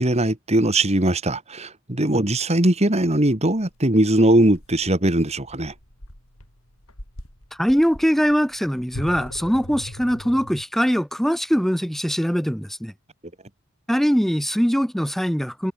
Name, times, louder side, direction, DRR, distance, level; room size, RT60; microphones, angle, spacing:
voice 1, 0.0-5.7, right 1 dB, 30° right, 2.5 m, -20 dB
sound 1, 3.5-10.6, equal, 80° left, 7.5 m, -41 dB
voice 2, 7.6-12.9 13.9-15.7, equal, ahead, 1.3 m, -22 dB
head